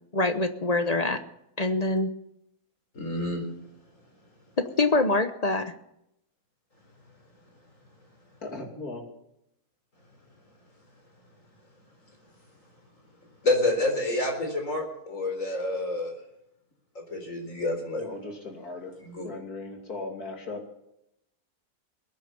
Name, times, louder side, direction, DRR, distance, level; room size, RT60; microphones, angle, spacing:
voice 1, 0.1-1.2 1.6-2.1 4.6-5.7, left 2 dB, 30° left, 8 dB, 0.9 m, -24 dB
voice 2, 2.9-3.4 13.4-16.1 17.1-18.1 19.0-19.3, left 2 dB, 60° left, 3 dB, 4.6 m, -28 dB
voice 3, 8.4-9.0 18.0-18.9 19.2-20.6, left 3 dB, 80° left, 2 dB, 3.3 m, -37 dB
21.0 x 9.4 x 7.0 m, 0.81 s
omnidirectional pair, 1.6 m